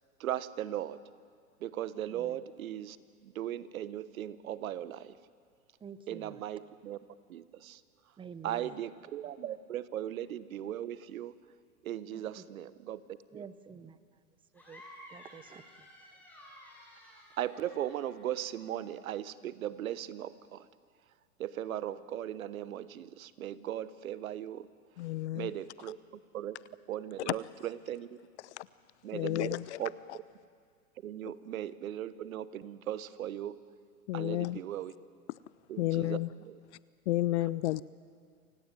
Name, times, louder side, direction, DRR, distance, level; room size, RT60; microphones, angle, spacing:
voice 1, 0.2-1.0 1.6-3.0 3.2-5.2 6.1-7.0 7.3-7.8 8.4-11.4 11.8-13.0 13.3-13.4 17.4-20.7 21.4-24.7 25.3-26.0 26.3-26.6 26.9-28.1 29.0-29.5 29.8-29.9 31.0-33.6 34.1-34.9 35.7-36.2 36.5-36.6, right 11 dB, 70° right, 16 dB, 1.2 m, -38 dB
voice 2, 2.0-2.4 5.8-6.4 8.2-8.8 12.1-12.4 13.3-14.2 14.5-14.8 15.1-15.9, right 6 dB, 10° right, 15 dB, 0.8 m, -49 dB
sound 1, 14.5-18.9, left 1 dB, 5° left, 7.6 m, -54 dB
voice 3, 25.0-25.5 27.3-27.4 28.4-28.7 29.1-29.8 34.1-34.6 35.8-36.3 37.1-37.8, left 16 dB, 50° left, 20 dB, 0.6 m, -31 dB
28.0 x 17.0 x 9.1 m, 2.1 s
hypercardioid pair, 115°, 43 cm